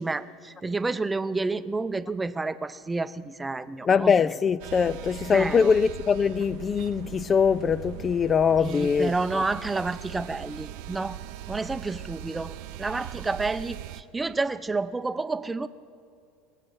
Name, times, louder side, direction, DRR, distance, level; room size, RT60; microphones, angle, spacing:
voice 1, 0.0-4.1 5.3-5.7 8.6-11.2 11.5-15.7, right 3 dB, 15° right, 0.6 m, -30 dB
voice 2, 3.8-9.4, left 6 dB, 30° left, 0.3 m, -23 dB
sound 1, 4.6-14.0, right 14 dB, 65° right, 0.6 m, -40 dB
22.0 x 7.5 x 8.2 m
hypercardioid pair, 85°, 0 cm